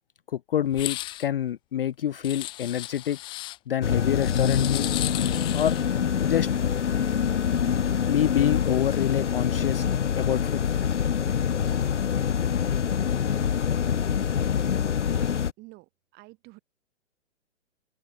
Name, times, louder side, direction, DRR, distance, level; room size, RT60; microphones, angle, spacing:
voice 1, 0.3-3.2 3.7-4.9 5.5-5.8 6.2-6.5 8.1-9.9 10.2-10.6, left 10 dB, 45° left, 0.5 m, -27 dB
sound 1, 0.7-1.3 2.2-3.6 4.2-5.9, left 16 dB, 15° left, 0.7 m, -35 dB
sound 2, 3.8-15.5, left 8 dB, 65° left, 1.2 m, -25 dB
voice 2, 14.5-16.6, right 22 dB, 25° right, 5.1 m, -52 dB
open air
figure-of-eight pair, 120°, 38 cm